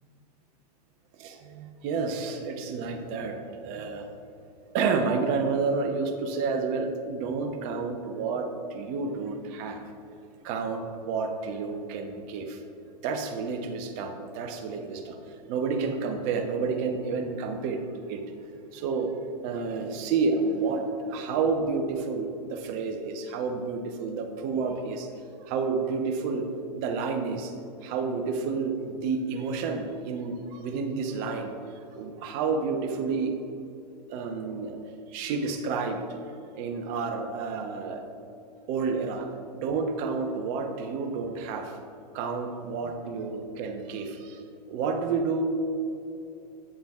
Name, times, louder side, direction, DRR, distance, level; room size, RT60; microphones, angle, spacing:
voice 1, 1.1-4.1 4.7-9.8 10.4-12.6 13.0-15.2 15.5-17.8 18.1-18.2 18.7-19.1 19.4-25.1 25.4-26.5 26.7-27.5 27.8-33.4 34.1-34.8 35.1-36.0 36.5-38.0 38.7-39.3 39.5-41.8 42.1-44.4 44.7-45.5, right 4 dB, 40° right, 5 dB, 0.9 m, -30 dB
8.7 x 7.3 x 2.4 m, 2.7 s
hypercardioid pair, 105°, 21 cm